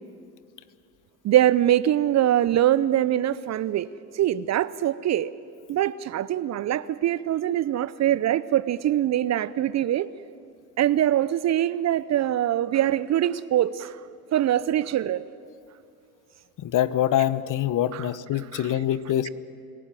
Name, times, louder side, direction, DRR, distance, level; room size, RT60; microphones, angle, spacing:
voice 1, 1.2-3.9 4.1-5.3 5.7-10.1 10.8-14.0 14.3-15.2 17.9-18.1 18.5-18.7, right 12 dB, 35° right, 18 dB, 0.6 m, -23 dB
voice 2, 16.6-19.3, left 12 dB, 45° left, 16 dB, 0.9 m, -24 dB
27.0 x 17.0 x 7.5 m, 2.4 s
hypercardioid pair, 65°, 45 cm